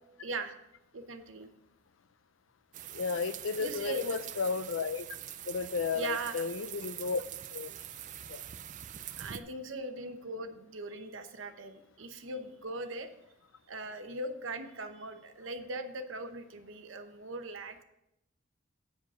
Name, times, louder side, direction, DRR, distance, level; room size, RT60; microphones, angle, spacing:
voice 1, 0.2-0.5 0.9-1.5 3.6-4.2 5.9-6.5 9.2-13.1 13.7-17.8, right 2 dB, 90° right, 7 dB, 0.9 m, -40 dB
sound 1, 2.7-9.4, right 10 dB, 40° right, 0.4 m, -44 dB
voice 2, 2.9-5.1 5.5-7.3 7.5-7.7 8.3-8.4, left 5 dB, 85° left, 15 dB, 0.5 m, -33 dB
8.5 x 5.2 x 6.1 m, 0.83 s
head